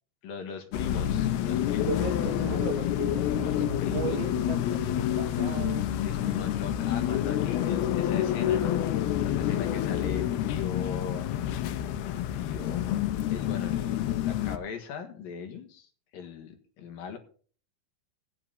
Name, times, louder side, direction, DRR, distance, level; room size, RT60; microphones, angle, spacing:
voice 1, 0.2-1.9 3.4-4.2 6.0-8.9 9.2-13.0 13.3-17.2, left 7 dB, 70° left, 5 dB, 3.3 m, -39 dB
sound 1, 0.7-14.6, left 11 dB, 85° left, 2.9 m, -28 dB
voice 2, 1.8-5.9, right 7 dB, 75° right, 6 dB, 1.8 m, -36 dB
16.0 x 9.6 x 4.0 m, 0.42 s
omnidirectional pair, 4.4 m